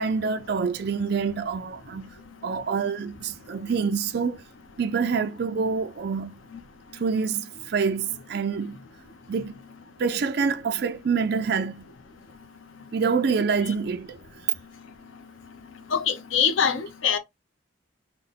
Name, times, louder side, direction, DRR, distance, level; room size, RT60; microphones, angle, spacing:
voice 1, 0.0-4.4 4.8-6.4 6.9-8.8 9.3-9.6 10.0-11.9 12.9-14.4, right 5 dB, 55° right, 0.4 m, -27 dB
voice 2, 15.9-17.2, left 7 dB, 85° left, 0.6 m, -23 dB
3.8 x 2.1 x 3.9 m
head